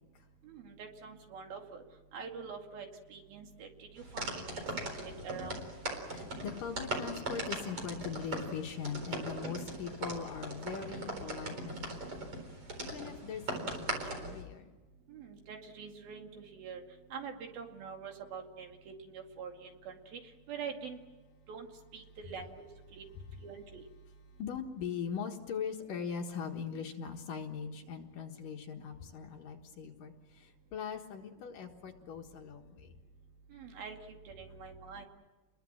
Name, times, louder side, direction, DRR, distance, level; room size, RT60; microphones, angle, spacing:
voice 1, 0.5-1.8 2.1-3.7 4.0-4.3 5.0-5.6 15.1-16.8 17.1-20.2 20.5-21.0 21.5-21.7 21.9-22.6 23.0-23.1 23.4-23.8 33.5-34.0 34.3-35.1, right 6 dB, 65° right, 3 dB, 4.0 m, -45 dB
sound 1, 4.0-14.4, right 2 dB, 35° right, 4.8 m, -40 dB
voice 2, 6.0-12.3 12.8-14.7 24.4-32.9, left 6 dB, 65° left, 3 dB, 2.8 m, -41 dB
29.5 x 22.0 x 7.5 m, 1.2 s
omnidirectional pair, 4.7 m